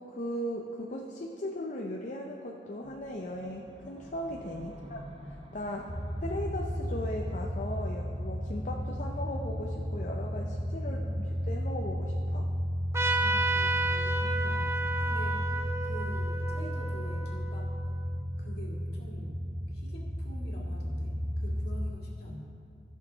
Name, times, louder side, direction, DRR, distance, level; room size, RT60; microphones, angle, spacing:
voice 1, 0.0-5.9 6.2-11.0 11.5-12.5, left 1 dB, 45° left, 0 dB, 0.6 m, -38 dB
sound 1, 2.8-12.9, equal, 30° right, 0.8 m, -51 dB
voice 2, 4.6-5.1 10.8-11.3 13.2-17.7 18.4-22.4, equal, 60° left, -3 dB, 2.1 m, -47 dB
sound 2, 5.9-21.9, equal, 80° right, 1.8 m, -33 dB
Trumpet, 12.9-18.0, right 2 dB, 15° right, 0.5 m, -32 dB
15.0 x 6.5 x 4.0 m, 2.4 s
head